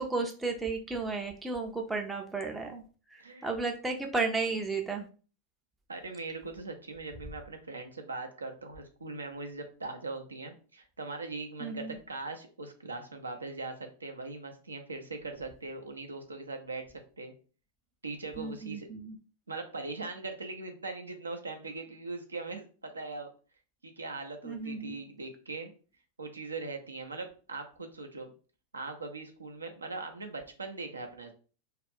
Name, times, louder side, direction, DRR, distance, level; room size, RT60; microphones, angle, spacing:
voice 1, 0.0-2.8 3.1-5.1 11.6-12.0 18.4-19.2 24.4-25.0, right 3 dB, 10° right, 2 dB, 0.4 m, -33 dB
voice 2, 3.2-3.5 5.9-16.9 17.2-17.3 18.0-18.9 19.5-23.3 23.8-25.7 26.2-28.3 28.7-31.3, right 3 dB, 75° right, 5 dB, 0.5 m, -40 dB
2.3 x 2.1 x 3.4 m, 0.38 s
figure-of-eight pair, 90°, 0 cm